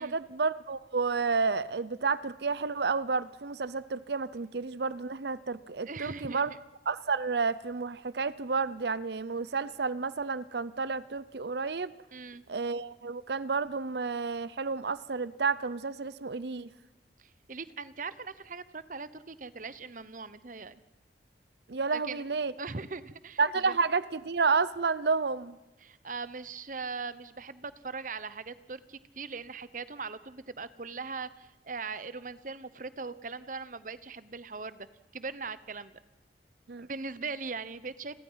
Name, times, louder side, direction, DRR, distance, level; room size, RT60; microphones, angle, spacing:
voice 1, 0.0-6.5 6.9-11.9 12.5-16.7 21.7-22.5 23.4-25.6 36.7-36.9, right 4 dB, 65° right, 17 dB, 0.7 m, -30 dB
voice 2, 5.9-6.4 12.1-12.4 17.2-20.7 21.9-22.2 22.6-23.4 23.6-23.8 25.8-34.9 35.1-35.9 36.8-38.2, right 4 dB, 45° right, 15 dB, 1.0 m, -40 dB
29.5 x 21.5 x 5.7 m, 1.0 s
head